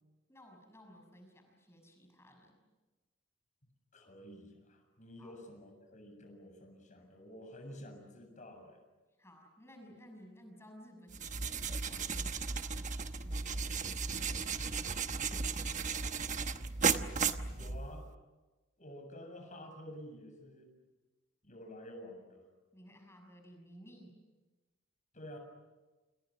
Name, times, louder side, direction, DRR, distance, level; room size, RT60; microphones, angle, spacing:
voice 1, 0.3-2.6 5.2-5.4 9.2-12.8 13.2-13.9 14.3-16.2 22.7-24.2, equal, 15° left, 3 dB, 6.2 m, -57 dB
voice 2, 3.9-8.8 17.5-18.0 18.8-20.7 21.4-22.5 25.1-25.4, left 1 dB, 40° left, 4 dB, 7.2 m, -50 dB
sound 1, 11.1-18.1, right 5 dB, 40° right, 1.1 m, -35 dB
30.0 x 28.5 x 6.2 m, 1.2 s
head